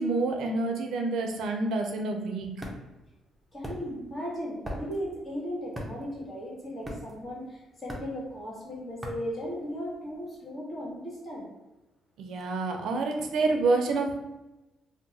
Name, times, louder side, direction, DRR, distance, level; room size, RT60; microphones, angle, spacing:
voice 1, 0.0-2.5 12.2-14.2, right 3 dB, 80° right, 3 dB, 0.5 m, -28 dB
sound 1, 2.0-10.1, equal, 10° right, 0.6 m, -42 dB
voice 2, 3.5-11.5, equal, 40° left, -3 dB, 1.4 m, -36 dB
2.8 x 2.0 x 4.0 m, 1.0 s
cardioid pair, 90°, 0 cm